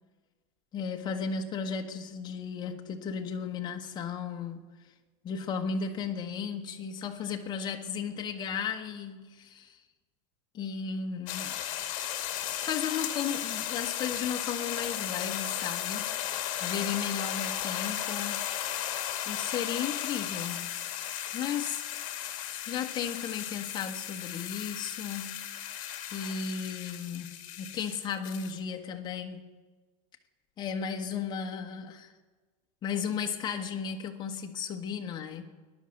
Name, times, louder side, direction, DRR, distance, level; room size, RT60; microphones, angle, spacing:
voice 1, 0.7-4.6 5.2-9.8 10.5-11.6 12.5-16.1 16.6-18.5 19.3-20.8 21.3-21.8 22.7-25.5 26.1-29.5 30.6-32.1 32.8-35.5, left 6 dB, 25° left, 1.3 m, -35 dB
sound 1, 11.3-28.5, left 11 dB, 45° left, 1.8 m, -35 dB
19.5 x 11.0 x 6.5 m
supercardioid pair, 155°, 18 cm